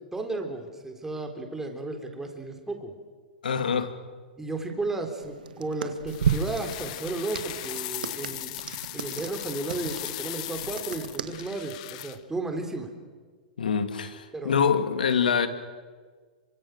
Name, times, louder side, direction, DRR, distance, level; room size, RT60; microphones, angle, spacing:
voice 1, 0.1-2.9 4.4-8.5 8.9-12.9 14.3-14.6, right 2 dB, 10° right, 4 dB, 3.8 m, -33 dB
voice 2, 3.4-3.9 13.6-15.5, left 6 dB, 85° left, 9 dB, 2.5 m, -25 dB
sound 1, 5.2-11.5, right 7 dB, 85° right, 1.9 m, -34 dB
sound 2, 6.1-12.2, left 16 dB, 55° left, 1.4 m, -38 dB
27.5 x 25.0 x 6.6 m, 1.5 s
hypercardioid pair, 125°, 5 cm